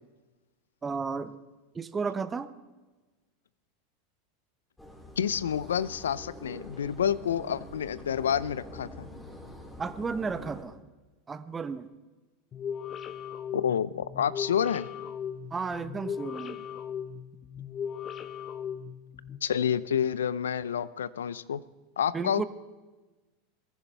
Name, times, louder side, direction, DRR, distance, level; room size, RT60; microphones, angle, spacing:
voice 1, 0.8-1.3 1.7-2.5 9.8-10.8 11.3-11.9 15.5-16.6 22.1-22.4, right 5 dB, 20° right, 12 dB, 0.9 m, -33 dB
sound 1, 4.8-10.6, left 1 dB, 10° left, 3.1 m, -46 dB
voice 2, 5.2-9.1 13.5-14.9 19.4-21.6 22.0-22.4, left 8 dB, 80° left, 19 dB, 0.5 m, -29 dB
sound 2, 12.5-19.4, left 8 dB, 35° left, 1.0 m, -38 dB
22.0 x 15.0 x 3.4 m, 1.2 s
hypercardioid pair, 85°, 0 cm